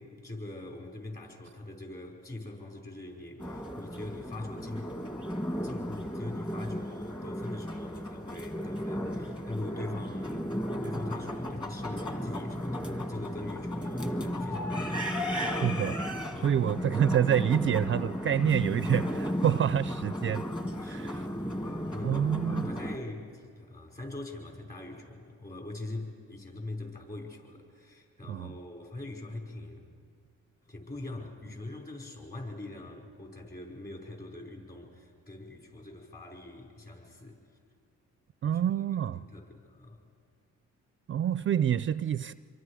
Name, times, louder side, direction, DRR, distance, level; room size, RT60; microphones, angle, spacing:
voice 1, 0.0-4.9 5.6-10.5 10.8-15.0 16.3-16.6 20.8-29.8 30.7-37.4 38.4-38.8 39.2-40.0, left 2 dB, 30° left, 0 dB, 5.5 m, -42 dB
sound 1, 3.4-23.0, equal, 15° left, 1.9 m, -34 dB
voice 2, 15.6-16.1 16.4-20.4 20.9-21.2 22.0-22.7 28.3-28.5 38.4-39.2 41.1-42.3, right 9 dB, 40° right, 15 dB, 0.5 m, -27 dB
26.5 x 23.0 x 5.0 m, 2.2 s
cardioid pair, 90°, 30 cm